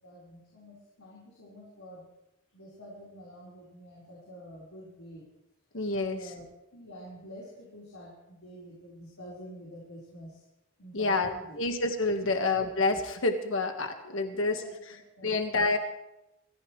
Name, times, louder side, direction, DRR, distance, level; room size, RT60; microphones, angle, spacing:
voice 1, 0.0-2.1 2.5-5.3 5.9-6.4 6.7-10.5 10.8-11.6 12.1-12.3 14.0-15.5, equal, 90° left, -5 dB, 4.4 m, -48 dB
voice 2, 5.7-6.2 10.9-11.3 11.6-14.6 15.2-15.8, left 3 dB, 65° left, 5 dB, 1.6 m, -28 dB
26.0 x 15.0 x 3.3 m, 0.89 s
head